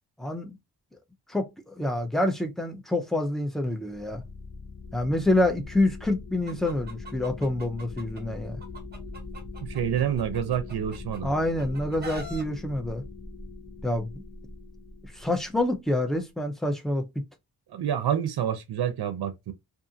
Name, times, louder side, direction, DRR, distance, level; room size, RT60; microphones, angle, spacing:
voice 1, 0.2-0.6 1.3-4.2 4.9-8.6 11.2-13.0 13.8-14.2 15.1-17.1, left 1 dB, ahead, 0.4 m, -27 dB
sound 1, 3.9-16.1, left 3 dB, 45° left, 0.6 m, -41 dB
Chicken rooster, 6.5-8.2 8.6-11.2 11.6-12.4, right 1 dB, 25° right, 0.8 m, -43 dB
voice 2, 9.6-11.3 17.7-19.5, right 9 dB, 75° right, 0.5 m, -28 dB
2.5 x 2.4 x 2.6 m
wide cardioid pair, 145°, 39 cm